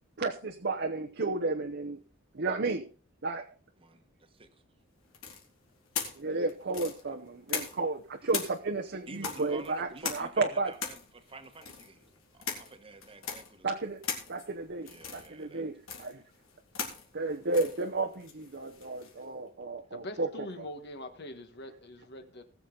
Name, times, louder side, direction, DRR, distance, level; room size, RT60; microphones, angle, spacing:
voice 1, 0.2-2.0 2.3-2.9 3.2-3.5 6.2-10.7 13.6-14.0 14.3-16.2 17.1-20.3, right 3 dB, 55° right, 0.9 m, -32 dB
voice 2, 3.8-4.6 9.1-12.0 12.3-13.7 14.8-15.7, right 3 dB, 25° right, 1.3 m, -49 dB
sound 1, 5.1-8.0 8.3-19.2, left 6 dB, 90° left, 3.2 m, -40 dB
voice 3, 19.9-22.4, left 1 dB, 55° left, 1.6 m, -43 dB
19.5 x 7.1 x 3.9 m
head